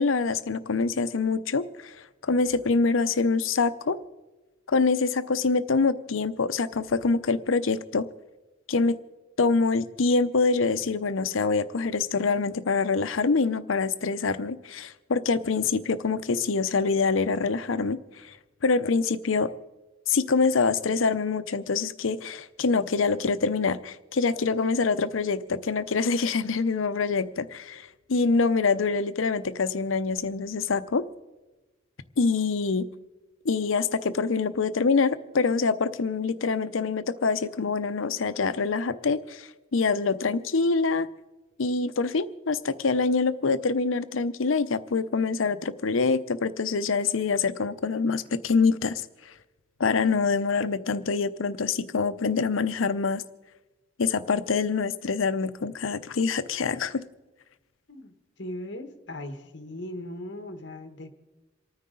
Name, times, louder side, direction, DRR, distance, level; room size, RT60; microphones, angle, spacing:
voice 1, 0.0-4.0 4.7-8.1 8.7-9.0 9.4-18.3 18.6-19.5 20.1-31.0 32.2-32.9 33.4-41.1 41.6-49.0 49.8-53.2 54.0-57.0, left 4 dB, 90° left, 13 dB, 0.7 m, -25 dB
voice 2, 57.9-61.1, left 1 dB, 60° left, 7 dB, 1.3 m, -38 dB
28.0 x 9.6 x 3.8 m, 1.1 s
head